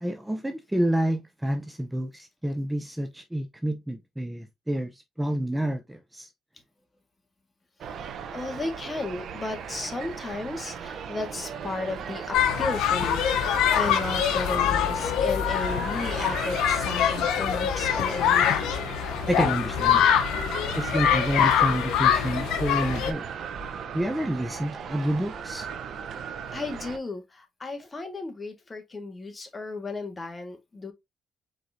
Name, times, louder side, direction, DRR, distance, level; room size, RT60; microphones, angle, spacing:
voice 1, 0.0-6.3 19.3-20.1 20.8-23.3 23.9-25.7, right 1 dB, 10° right, 0.6 m, -29 dB
sound 1, 7.8-27.0, right 7 dB, 65° right, 0.7 m, -37 dB
voice 2, 8.3-18.6 26.5-30.9, left 3 dB, 25° left, 1.6 m, -34 dB
sound 2, 12.3-23.1, left 9 dB, 90° left, 0.8 m, -24 dB
4.9 x 3.9 x 2.7 m
cardioid pair, 90°, 0 cm